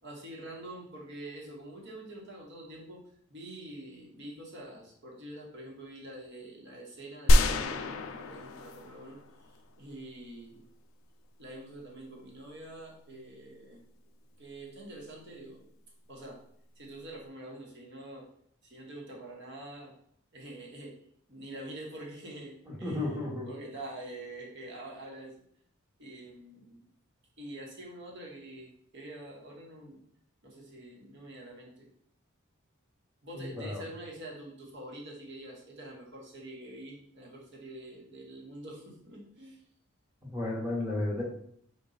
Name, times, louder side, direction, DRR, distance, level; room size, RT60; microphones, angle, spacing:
voice 1, 0.0-3.0 3.3-9.2 9.8-10.6 11.4-13.8 14.4-15.6 16.1-16.4 16.8-18.3 18.6-19.9 20.3-21.0 21.3-25.4 26.0-26.8 27.4-30.0 30.4-31.9 33.2-39.6, right 1 dB, 55° right, -1 dB, 1.0 m, -46 dB
sound 1, 7.3-9.6, left 1 dB, 65° left, 0.4 m, -26 dB
voice 2, 22.7-23.5 33.3-33.8 40.2-41.2, left 2 dB, 10° right, -3 dB, 0.9 m, -33 dB
4.0 x 2.3 x 3.8 m, 0.65 s
head